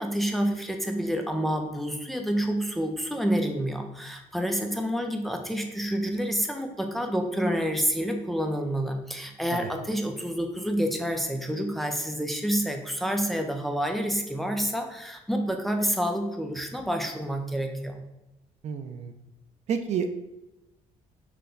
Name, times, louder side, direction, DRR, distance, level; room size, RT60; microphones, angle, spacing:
voice 1, 0.0-18.0, equal, ahead, 3 dB, 0.5 m, -28 dB
voice 2, 18.6-19.1 19.7-20.1, right 6 dB, 55° right, 7 dB, 0.4 m, -29 dB
5.7 x 2.2 x 3.8 m, 0.94 s
cardioid pair, 125°, 14 cm